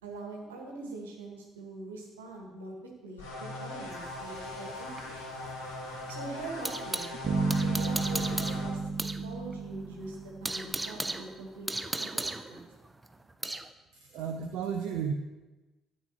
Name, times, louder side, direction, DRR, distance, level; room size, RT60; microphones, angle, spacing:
voice 1, 0.0-5.2 6.1-7.1 7.6-8.8 9.2-11.7 12.0-12.6, right 2 dB, 75° right, 0 dB, 1.6 m, -43 dB
sound 1, 3.2-8.7, left 2 dB, 80° left, 2.5 m, -40 dB
sound 2, 3.9-7.1 7.5-9.2 9.5-9.6 10.0-13.7, right 2 dB, 15° right, 0.6 m, -36 dB
sound 3, 7.2-11.0, right 3 dB, 40° right, 1.5 m, -32 dB
voice 2, 13.9-15.1, right 7 dB, 60° right, 5 dB, 0.6 m, -33 dB
13.0 x 8.5 x 3.1 m, 1.2 s
figure-of-eight pair, 50°, 0 cm